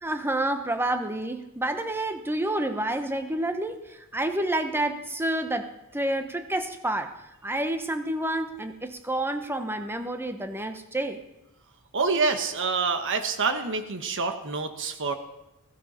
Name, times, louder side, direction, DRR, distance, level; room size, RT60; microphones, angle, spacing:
voice 1, 0.0-7.1 7.4-11.2, right 1 dB, 10° right, 7 dB, 1.0 m, -29 dB
voice 2, 11.9-15.1, right 4 dB, 60° right, 7 dB, 1.4 m, -27 dB
15.5 x 15.0 x 4.3 m, 0.91 s
head